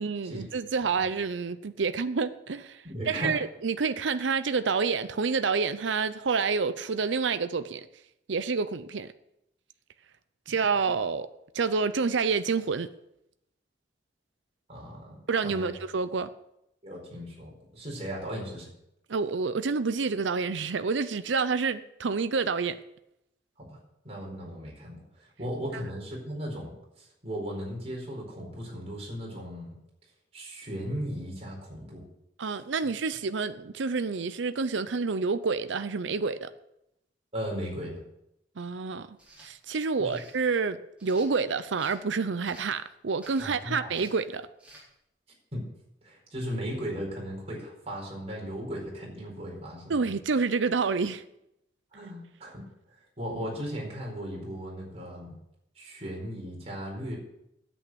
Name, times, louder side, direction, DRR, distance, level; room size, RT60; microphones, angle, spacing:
voice 1, 0.0-7.9 8.3-9.1 10.5-11.3 11.5-12.9 15.3-16.3 19.1-22.8 32.4-36.5 38.6-44.4 49.9-51.2, right 4 dB, 80° right, 0.6 m, -28 dB
voice 2, 2.8-3.3 14.7-15.7 16.8-18.7 23.6-23.8 24.0-29.7 30.3-32.1 37.3-38.0 40.0-40.2 43.4-43.9 45.5-45.7 46.0-50.1 51.9-52.6 53.2-55.3 55.8-57.2, equal, 35° right, 4.6 m, -37 dB
sound 1, 39.1-39.5 40.1-40.4 41.0-42.0 42.5-42.8 43.2-43.5 43.9-44.2 44.6-44.8, right 1 dB, 5° right, 4.0 m, -52 dB
10.0 x 8.6 x 8.0 m
head